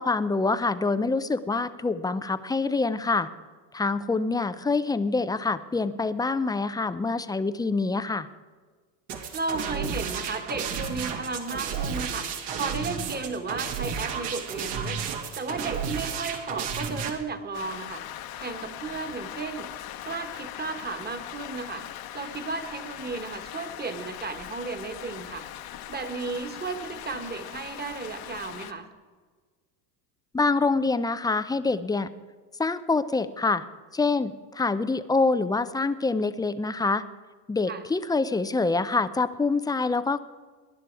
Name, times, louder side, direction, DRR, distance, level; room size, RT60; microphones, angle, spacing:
voice 1, 0.0-3.3 3.7-8.3 30.3-32.1 32.6-33.6 33.9-37.0 37.5-40.2, left 3 dB, 10° left, 13 dB, 0.5 m, -26 dB
sound 1, 9.1-17.1, right 6 dB, 60° right, 2.4 m, -32 dB
voice 2, 9.3-15.0 15.3-18.0 18.4-19.7 20.0-21.9 22.1-25.5 25.9-28.9 37.7-37.8, right 4 dB, 20° right, 8 dB, 1.7 m, -34 dB
Rain, 17.5-28.7, left 12 dB, 45° left, 1.1 m, -40 dB
19.5 x 11.0 x 4.8 m, 1.5 s
supercardioid pair, 100°, 50 cm